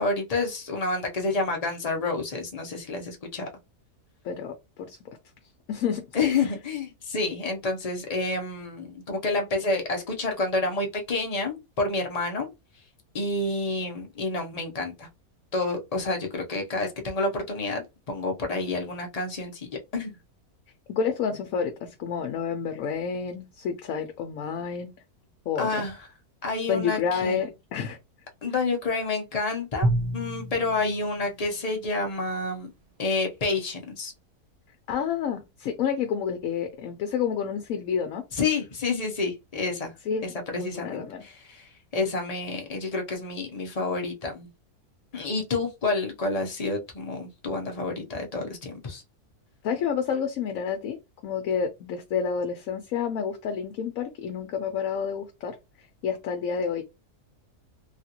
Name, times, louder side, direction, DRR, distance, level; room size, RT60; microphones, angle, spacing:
voice 1, 0.0-3.5 6.1-12.5 13.1-15.1 15.5-20.2 25.6-26.0 26.4-27.4 28.4-32.7 33.0-34.1 38.3-39.9 40.2-44.5 45.1-49.0, left 3 dB, 40° left, 0.5 m, -29 dB
voice 2, 4.2-5.0 5.7-6.5 20.9-24.9 25.5-25.8 26.7-28.0 34.9-38.2 40.1-40.3 40.5-41.2 49.6-55.6 56.0-56.8, left 7 dB, 70° left, 0.9 m, -29 dB
Drum, 29.8-32.2, right 1 dB, 35° right, 0.6 m, -30 dB
3.3 x 2.4 x 2.8 m
omnidirectional pair, 1.6 m